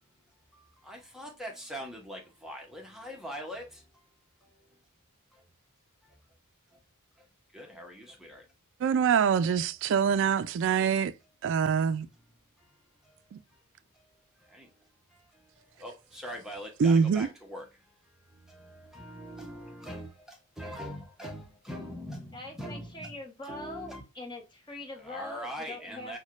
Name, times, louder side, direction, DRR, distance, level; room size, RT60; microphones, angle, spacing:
voice 1, 0.5-3.9 4.4-4.7 5.3-5.4 6.0-6.2 6.7-6.8 7.5-8.4 12.6-12.7 13.0-13.2 13.5-13.6 14.4-14.7 15.1-17.9 18.3-23.1 23.4-24.0 25.0-26.2, equal, ahead, 0.7 m, -43 dB
voice 2, 8.8-11.1 11.4-12.1 13.3-13.4 16.8-17.3, right 6 dB, 55° right, 0.3 m, -24 dB
voice 3, 22.3-26.2, left 2 dB, 20° left, 1.0 m, -43 dB
6.2 x 2.2 x 2.4 m
head